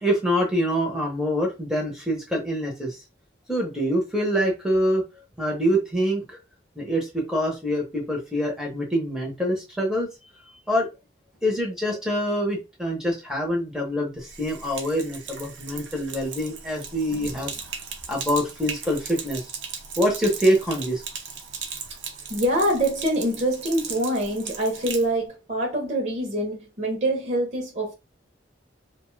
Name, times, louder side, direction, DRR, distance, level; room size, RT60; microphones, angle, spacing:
voice 1, 0.0-3.0 3.5-5.0 5.4-6.4 6.8-10.1 10.7-10.9 11.4-17.5 18.1-19.5 20.0-21.0, equal, 5° right, 0.7 m, -25 dB
Sink (filling or washing), 14.2-25.1, right 6 dB, 80° right, 0.7 m, -37 dB
voice 2, 22.3-27.9, right 1 dB, 40° right, 0.7 m, -25 dB
2.6 x 2.2 x 3.1 m
head